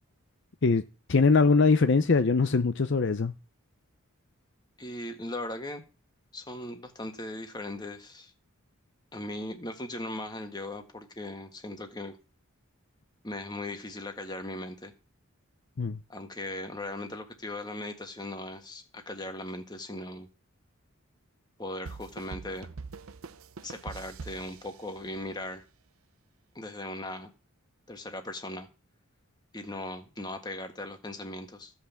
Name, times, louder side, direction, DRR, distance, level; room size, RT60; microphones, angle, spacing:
voice 1, 1.1-3.3 15.8-16.0, left 4 dB, 55° left, 0.6 m, -22 dB
voice 2, 4.8-5.8 6.3-8.3 9.1-12.2 13.2-14.9 16.1-20.3 21.6-22.7 23.6-25.6 26.5-27.3 27.9-28.7 29.5-31.7, left 1 dB, 20° left, 1.6 m, -38 dB
sound 1, 21.9-25.4, right 4 dB, 80° right, 0.7 m, -44 dB
15.5 x 5.9 x 7.2 m
head